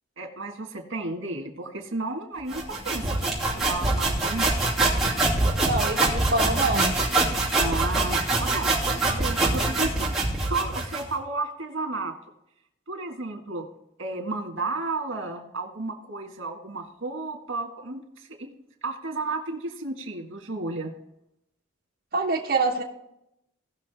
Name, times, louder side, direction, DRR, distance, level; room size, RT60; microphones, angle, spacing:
voice 1, 0.2-4.6 7.6-12.2 12.9-13.7 14.0-18.5 18.8-20.9, right 3 dB, 80° right, 3 dB, 1.8 m, -33 dB
sound 1, 2.5-11.1, right 2 dB, ahead, 2.6 m, -24 dB
voice 2, 5.6-7.0 22.1-22.8, right 3 dB, 50° right, -3 dB, 1.1 m, -25 dB
17.5 x 6.2 x 3.5 m, 0.82 s
head